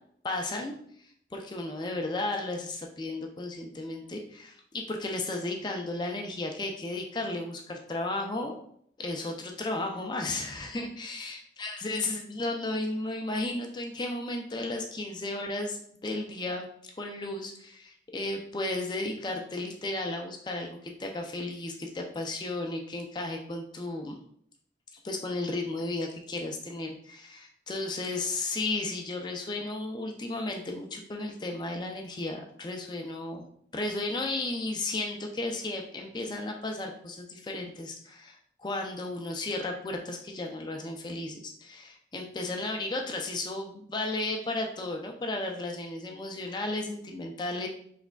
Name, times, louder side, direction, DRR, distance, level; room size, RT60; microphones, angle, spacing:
voice 1, 0.2-8.6 9.0-16.7 17.0-24.2 24.9-33.4 33.7-47.7, left 2 dB, 25° left, 2 dB, 0.4 m, -34 dB
4.7 x 3.3 x 2.2 m, 0.65 s
head